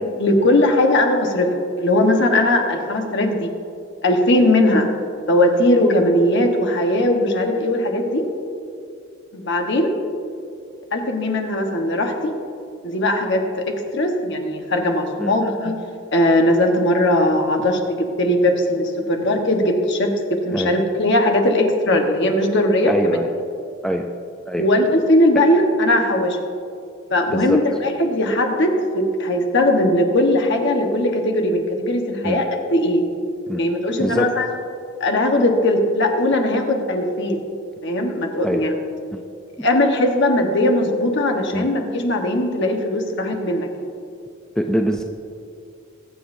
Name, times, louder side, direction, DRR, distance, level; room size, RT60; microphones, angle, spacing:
voice 1, 0.2-1.5 1.8-3.5 4.0-4.9 5.3-8.3 9.3-9.9 10.9-12.3 12.8-15.8 16.1-23.2 24.6-26.4 27.1-33.0 33.6-34.5 35.0-37.4 37.8-38.7 39.6-43.9, left 1 dB, 55° left, 3 dB, 1.2 m, -19 dB
voice 2, 22.9-23.3 23.8-24.1 24.5-24.6 27.3-27.6 32.2-32.4 33.5-33.6 34.0-34.3 38.4-38.7 39.1-39.2 39.6-39.7 41.5-41.7 44.6-45.0, equal, 5° left, 3 dB, 0.4 m, -23 dB
23.0 x 7.6 x 2.6 m, 2.4 s
head